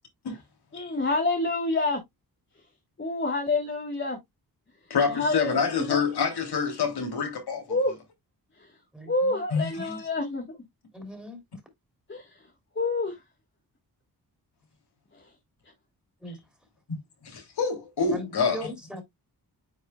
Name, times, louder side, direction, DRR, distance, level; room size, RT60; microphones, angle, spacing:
voice 1, 0.7-2.0 3.0-4.2 5.1-5.5 5.7-6.0 7.7-7.9 9.1-10.4 12.1-12.2 12.8-13.1, left 2 dB, 30° left, 1.4 m, -27 dB
voice 2, 4.9-7.8 9.5-10.0 17.2-18.7, left 5 dB, 80° left, 2.9 m, -27 dB
voice 3, 8.9-9.4 10.9-11.4 16.2-16.4 18.1-19.0, equal, ahead, 2.9 m, -39 dB
9.3 x 4.8 x 2.2 m
wide cardioid pair, 145°, 39 cm